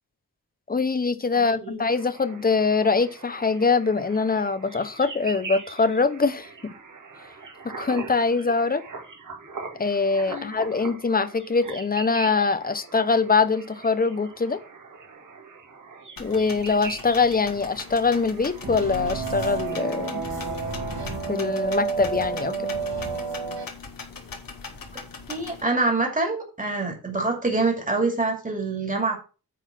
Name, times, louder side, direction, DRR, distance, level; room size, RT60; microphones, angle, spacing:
voice 1, 0.7-6.5 7.6-8.8 9.8-14.6 16.2-20.2 21.3-22.7, left 4 dB, 25° left, 0.7 m, -23 dB
voice 2, 1.3-1.8 10.3-10.5 24.9-25.0 25.3-29.2, right 3 dB, 20° right, 2.4 m, -26 dB
sound 1, 1.9-21.0, right 4 dB, 55° right, 1.9 m, -42 dB
sound 2, 16.2-25.6, left 5 dB, 65° left, 1.6 m, -40 dB
sound 3, 18.6-23.6, right 5 dB, 85° right, 2.1 m, -30 dB
9.3 x 4.0 x 5.6 m
wide cardioid pair, 155°, 36 cm